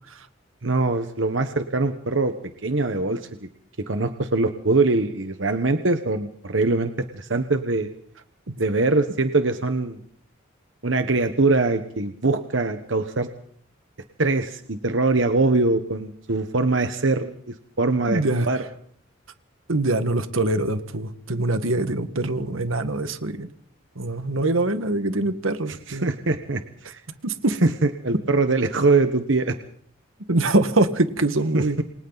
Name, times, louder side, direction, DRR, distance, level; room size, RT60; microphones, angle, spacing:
voice 1, 0.6-3.5 3.9-7.9 8.6-10.0 10.8-13.3 14.2-18.6 25.7-27.0 27.6-29.5 31.5-31.8, right 3 dB, 65° right, 8 dB, 1.2 m, -23 dB
voice 2, 18.1-18.5 19.7-23.5 24.0-26.1 27.2-27.6 30.3-31.8, right 2 dB, 85° right, 9 dB, 1.7 m, -23 dB
28.5 x 24.0 x 4.1 m, 0.62 s
head